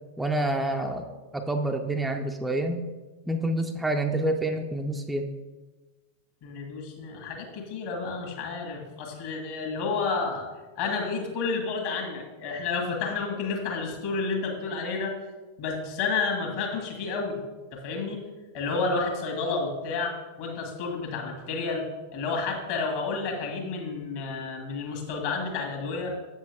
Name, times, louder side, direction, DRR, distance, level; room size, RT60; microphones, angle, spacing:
voice 1, 0.2-1.1 1.3-2.9 3.3-5.3, right 1 dB, 5° right, 3 dB, 0.5 m, -27 dB
voice 2, 6.4-10.5 10.8-15.1 15.6-17.4 17.7-18.2 18.5-21.9 22.1-26.1, left 4 dB, 50° left, 0 dB, 1.8 m, -30 dB
7.7 x 7.3 x 3.5 m, 1.2 s
figure-of-eight pair, 90°, 0 cm